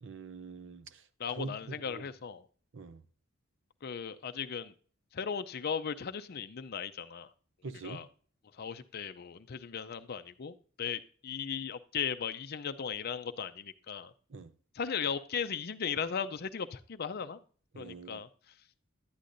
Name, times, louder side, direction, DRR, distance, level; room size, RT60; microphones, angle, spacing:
voice 1, 0.0-1.0 1.4-2.0 2.7-3.0 7.6-8.0 14.3-14.5 17.7-18.2, right 3 dB, 65° right, 0.7 m, -44 dB
voice 2, 1.2-2.5 3.8-4.7 5.1-7.3 7.8-8.1 8.6-14.1 14.7-17.4 17.8-18.3, left 7 dB, 50° left, 0.5 m, -37 dB
10.5 x 10.0 x 2.6 m
head